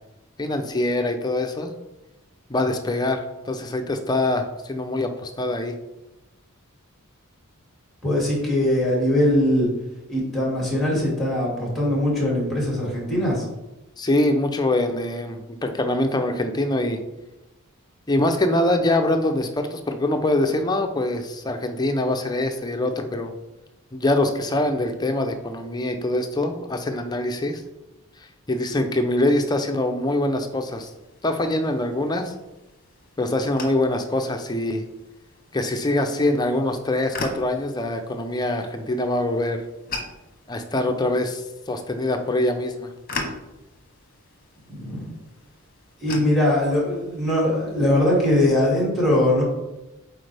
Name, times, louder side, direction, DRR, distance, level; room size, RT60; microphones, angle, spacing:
voice 1, 0.4-1.7 2.5-5.7 14.0-17.0 18.1-23.3 23.9-27.6 28.5-30.9 31.2-32.3 33.2-34.8 35.5-39.6 40.5-42.9, left 1 dB, 20° left, 5 dB, 0.5 m, -24 dB
voice 2, 8.0-9.7 10.1-13.4 44.7-45.1 46.0-49.4, left 1 dB, ahead, -4 dB, 2.3 m, -21 dB
sound 1, 30.7-48.5, left 2 dB, 40° left, 1.0 m, -41 dB
8.1 x 4.3 x 3.4 m, 1.0 s
head